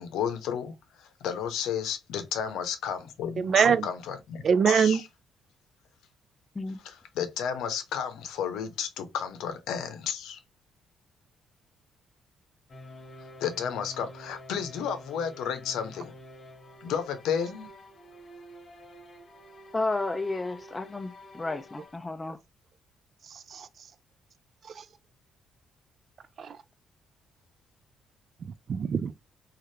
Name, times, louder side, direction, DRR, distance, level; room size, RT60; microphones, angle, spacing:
voice 1, 0.0-5.0 6.8-10.4 13.4-16.1 16.8-17.7, left 8 dB, 85° left, 0.6 m, -32 dB
voice 2, 3.4-3.9 4.4-5.0 22.3-22.4 23.2-23.9 24.6-24.9 26.4-26.6 28.4-29.1, right 7 dB, 55° right, 0.4 m, -25 dB
sound 1, 12.7-22.0, left 1 dB, 40° left, 1.1 m, -48 dB
voice 3, 19.7-22.4, left 2 dB, 20° left, 0.4 m, -32 dB
3.2 x 2.4 x 2.7 m
cardioid pair, 90°, 0 cm